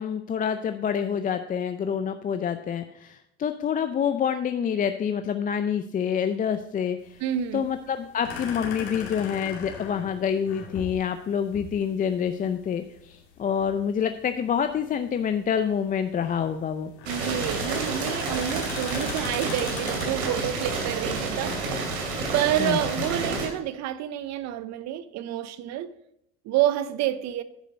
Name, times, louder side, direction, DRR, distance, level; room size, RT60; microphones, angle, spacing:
voice 1, 0.0-7.2 7.5-16.9 22.6-22.8, left 8 dB, 25° left, 0.5 m, -27 dB
sound 1, 7.0-20.1, left 6 dB, 75° left, 2.5 m, -40 dB
voice 2, 7.2-7.7 17.1-21.6 22.3-25.9 26.4-27.4, right 11 dB, 55° right, 0.7 m, -28 dB
sound 2, 17.1-23.5, right 3 dB, 85° right, 2.6 m, -30 dB
9.9 x 5.2 x 5.2 m
supercardioid pair, 100°, 33 cm